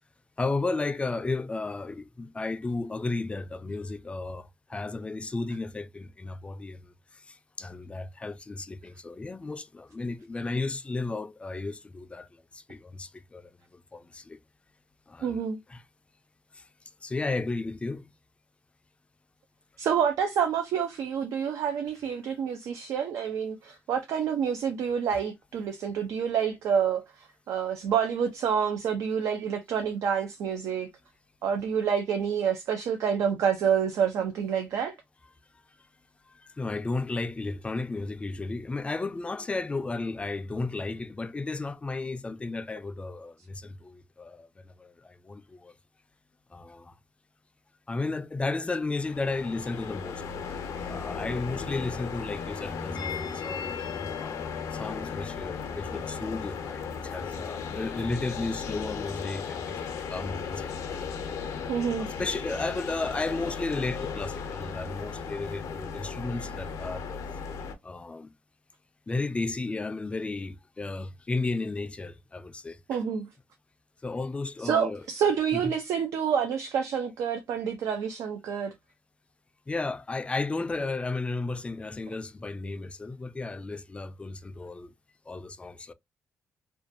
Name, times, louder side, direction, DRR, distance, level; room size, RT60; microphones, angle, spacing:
voice 1, 0.4-6.9 7.3-12.3 12.5-14.4 15.1-15.4 15.7-15.8 16.5-16.6 17.0-18.1 22.0-22.1 25.1-25.2 36.4-45.7 46.5-46.9 47.9-50.2 50.9-59.8 60.1-60.7 61.5-67.2 67.8-68.3 69.1-73.0 74.0-75.1 75.5-75.8 79.7-84.9 85.3-85.9, left 3 dB, 20° left, 0.3 m, -34 dB
voice 2, 15.2-15.6 19.8-30.9 31.4-34.9 50.8-50.9 61.7-62.1 72.9-73.3 74.6-78.7, right 7 dB, 85° right, 0.4 m, -28 dB
sound 1, 49.0-67.8, left 6 dB, 85° left, 0.5 m, -36 dB
2.5 x 2.2 x 2.5 m
cardioid pair, 85°, 5 cm